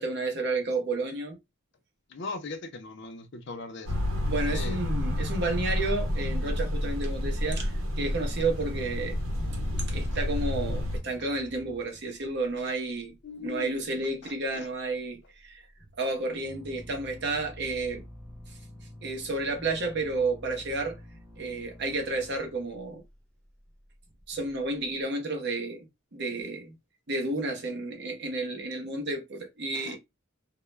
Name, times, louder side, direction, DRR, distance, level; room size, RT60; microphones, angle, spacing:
voice 1, 0.0-1.4 4.3-9.1 9.9-13.1 13.4-15.7 16.0-18.0 19.0-21.0 21.4-23.0 24.3-25.9 26.1-26.7 27.1-30.0, right 2 dB, 50° right, 0.7 m, -31 dB
voice 2, 2.1-3.9 4.5-4.8 13.2-13.8 14.2-14.7 29.7-30.0, left 3 dB, 50° left, 0.5 m, -39 dB
sound 1, 3.9-11.0, left 1 dB, 80° right, 0.9 m, -30 dB
sound 2, 7.7-12.6 12.9-13.4 13.6-14.2 14.4-15.2 15.4-25.0, equal, 5° left, 0.7 m, -48 dB
2.2 x 2.0 x 3.1 m
head